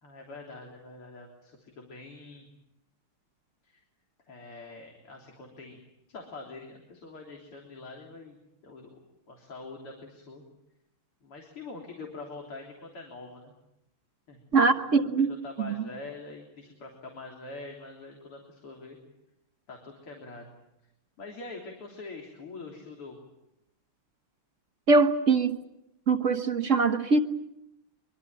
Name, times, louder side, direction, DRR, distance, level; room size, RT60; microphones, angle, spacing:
voice 1, 0.0-2.5 3.6-3.8 4.3-5.8 6.1-8.4 8.6-9.0 9.3-10.4 11.2-13.5 14.3-19.0 19.7-20.5 21.2-23.2, left 3 dB, 85° left, 1 dB, 4.3 m, -44 dB
voice 2, 14.5-15.3 15.6-15.7 24.9-25.6 26.1-27.2, right 4 dB, 40° right, 8 dB, 1.3 m, -22 dB
24.5 x 23.5 x 8.9 m, 0.85 s
omnidirectional pair, 2.4 m